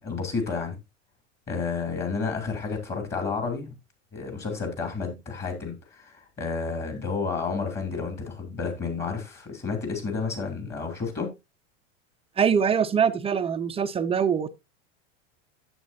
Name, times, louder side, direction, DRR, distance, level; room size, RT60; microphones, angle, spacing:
voice 1, 0.0-0.8 1.5-3.7 4.1-11.3, left 4 dB, 25° left, 2.7 m, -31 dB
voice 2, 12.4-14.5, right 7 dB, 15° right, 0.5 m, -23 dB
11.0 x 7.5 x 2.6 m
hypercardioid pair, 110°, 37 cm